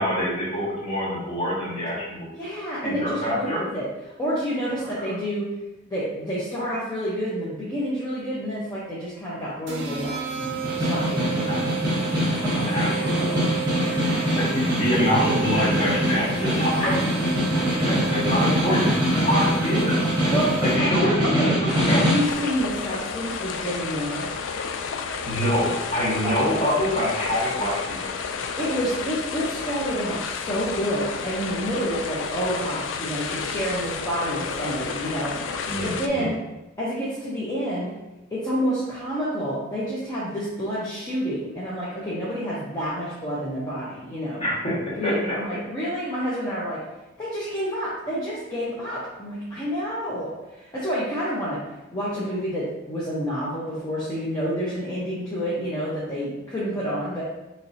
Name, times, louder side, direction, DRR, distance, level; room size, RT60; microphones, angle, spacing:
voice 1, 0.0-2.2 2.8-3.6 11.4-11.9 12.7-13.4 14.3-16.9 17.4-20.3 20.6-21.5 21.9-22.0 25.2-28.3 35.6-36.3 44.4-45.3 47.4-47.5, equal, 35° left, -8 dB, 1.5 m, -26 dB
voice 2, 2.4-3.9 4.2-5.5 5.9-11.7 12.4-13.4 13.8-14.4 16.8-17.1 20.3-20.5 20.8-21.5 21.9-24.3 26.2-26.3 28.6-35.6 35.8-36.4 36.8-37.9 38.3-44.4 45.0-46.8 47.2-51.6 51.9-57.2, equal, 20° left, -9 dB, 0.7 m, -29 dB
sound 1, 9.7-21.1, right 7 dB, 55° right, 0.5 m, -33 dB
Snare drum, 10.5-22.3, equal, 20° right, 1.1 m, -24 dB
sound 2, 21.7-36.1, left 5 dB, 65° left, 0.3 m, -31 dB
4.3 x 3.1 x 2.6 m, 1.0 s
head